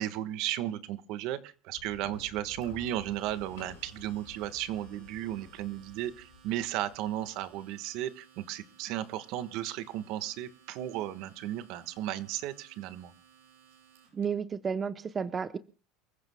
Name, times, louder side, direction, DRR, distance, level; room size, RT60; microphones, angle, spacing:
voice 1, 0.0-13.1, right 13 dB, 60° right, 12 dB, 1.3 m, -35 dB
sound 1, 1.7-7.6, left 7 dB, 90° left, 5.6 m, -53 dB
Domestic sounds home sounds, 2.6-14.2, right 8 dB, 80° right, 6.6 m, -60 dB
voice 2, 14.1-15.6, right 6 dB, 25° right, 13 dB, 0.7 m, -32 dB
29.0 x 15.0 x 2.2 m, 0.38 s
supercardioid pair, 130°, 0 cm